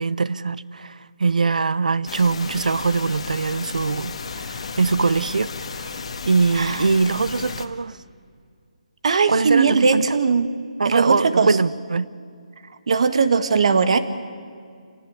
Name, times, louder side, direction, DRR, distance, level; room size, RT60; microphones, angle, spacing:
voice 1, 0.0-5.9 6.3-8.0 9.3-10.1 10.8-12.1, right 4 dB, 80° right, 19 dB, 0.8 m, -22 dB
sound 1, 2.1-7.7, left 4 dB, 50° left, 1.9 m, -33 dB
voice 2, 6.5-6.9 9.0-10.5 10.8-11.6 12.9-14.0, right 5 dB, 50° right, 11 dB, 1.8 m, -19 dB
27.5 x 18.0 x 9.8 m, 2.3 s
hypercardioid pair, 165°, 4 cm